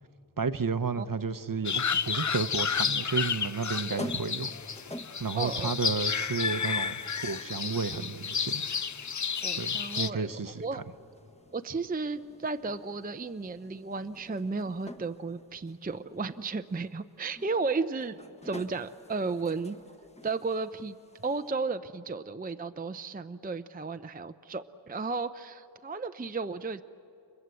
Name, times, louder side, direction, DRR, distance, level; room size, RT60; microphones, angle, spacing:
voice 1, 0.4-4.5 5.2-6.9 7.2-8.7 9.6-10.8, right 5 dB, 45° right, 12 dB, 0.8 m, -32 dB
sound 1, 1.7-10.1, left 6 dB, 40° left, 0.6 m, -31 dB
sound 2, 4.0-21.5, left 1 dB, 15° left, 1.1 m, -50 dB
voice 2, 5.4-5.8 9.4-10.8 11.5-19.8 20.2-21.0 21.2-26.8, right 4 dB, 20° right, 10 dB, 0.5 m, -34 dB
29.5 x 23.0 x 8.2 m, 3.0 s
wide cardioid pair, 65°, 46 cm